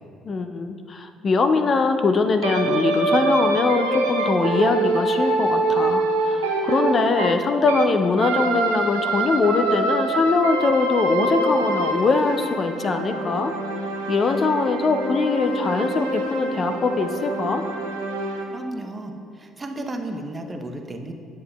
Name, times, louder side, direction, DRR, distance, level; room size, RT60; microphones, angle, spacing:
voice 1, 0.2-13.5 14.1-17.6, left 3 dB, 40° left, 7 dB, 0.4 m, -22 dB
sound 1, 2.4-7.9 8.2-18.4, right 2 dB, 80° right, 0.7 m, -25 dB
voice 2, 18.5-21.1, right 1 dB, 30° right, 4 dB, 0.7 m, -33 dB
9.3 x 7.3 x 2.3 m, 2.3 s
figure-of-eight pair, 50°, 0 cm